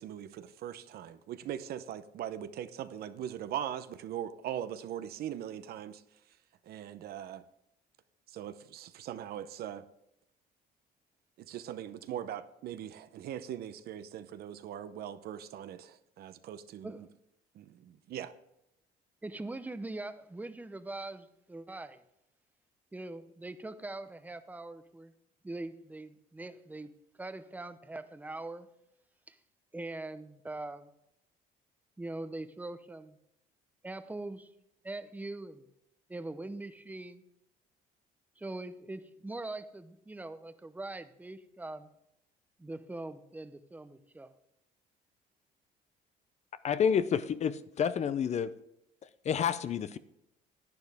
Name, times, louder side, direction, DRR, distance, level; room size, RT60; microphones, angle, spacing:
voice 1, 0.0-6.0 6.6-7.4 8.3-9.8 11.4-17.1 17.5-18.3, right 10 dB, 65° right, 12 dB, 0.7 m, -40 dB
voice 2, 19.2-22.0 22.9-25.1 25.4-26.9 27.2-28.7 29.3-29.4 29.7-30.9 32.0-33.2 33.8-34.5 34.8-35.7 36.1-37.2 38.4-41.9 42.6-44.3, right 2 dB, 10° right, 11 dB, 0.7 m, -42 dB
voice 3, 46.6-48.5 49.0-50.0, left 7 dB, 40° left, 14 dB, 0.6 m, -29 dB
10.5 x 9.8 x 3.5 m, 0.82 s
cardioid pair, 110°, 17 cm